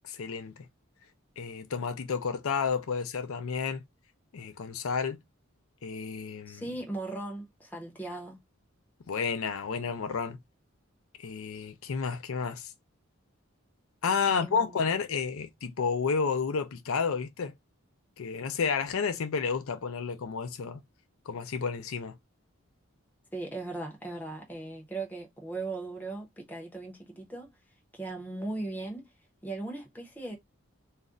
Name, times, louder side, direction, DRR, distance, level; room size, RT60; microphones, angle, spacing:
voice 1, 0.1-0.7 1.4-3.8 4.3-5.2 5.8-6.6 9.1-10.4 11.2-12.7 14.0-17.5 18.2-20.8 21.3-22.2, left 5 dB, 75° left, 0.5 m, -31 dB
voice 2, 6.5-8.4 14.3-15.0 23.3-27.5 27.9-29.1 29.4-30.4, right 2 dB, 10° left, 0.6 m, -38 dB
2.4 x 2.1 x 3.6 m
head